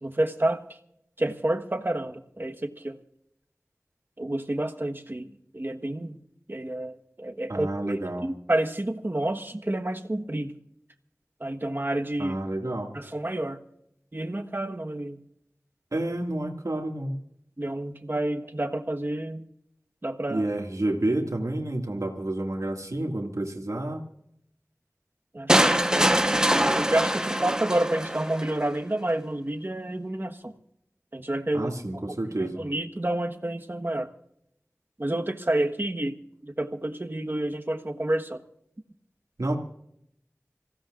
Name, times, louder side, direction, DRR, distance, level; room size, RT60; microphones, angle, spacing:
voice 1, 0.0-0.6 1.2-3.0 4.2-6.1 6.5-7.7 8.2-10.5 11.4-12.4 12.9-13.6 14.1-15.2 17.6-19.4 20.0-20.4 25.3-25.9 26.8-30.5 31.1-31.7 32.6-34.1 35.0-36.2 36.4-38.4, right 1 dB, 40° right, 5 dB, 1.3 m, -29 dB
voice 2, 7.5-8.3 12.2-12.9 15.9-17.1 20.3-24.0 31.5-32.7 39.4-39.6, right 1 dB, 70° right, 1 dB, 2.1 m, -29 dB
sound 1, 25.5-28.5, equal, 10° right, 1.1 m, -23 dB
26.5 x 16.0 x 2.5 m, 0.76 s
wide cardioid pair, 50°, 6 cm